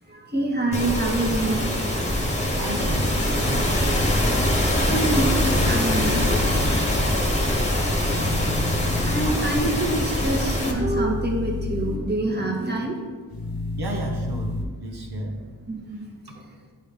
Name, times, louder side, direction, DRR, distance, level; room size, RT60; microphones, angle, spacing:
voice 1, 0.1-1.7 4.6-6.4 9.0-13.2 14.5-14.7 15.7-16.1, right 2 dB, 25° right, 0 dB, 1.3 m, -26 dB
sound 1, 0.7-10.7, left 1 dB, 15° left, 1.3 m, -23 dB
voice 2, 2.6-3.7 9.2-9.7 13.8-14.6 14.8-15.4, right 2 dB, 70° right, 0 dB, 1.0 m, -32 dB
sound 2, 5.3-6.6 8.0-9.3 10.6-12.0 13.3-14.6, left 3 dB, 60° left, 1.1 m, -30 dB
10.0 x 3.6 x 3.5 m, 1.4 s
wide cardioid pair, 65°, 40 cm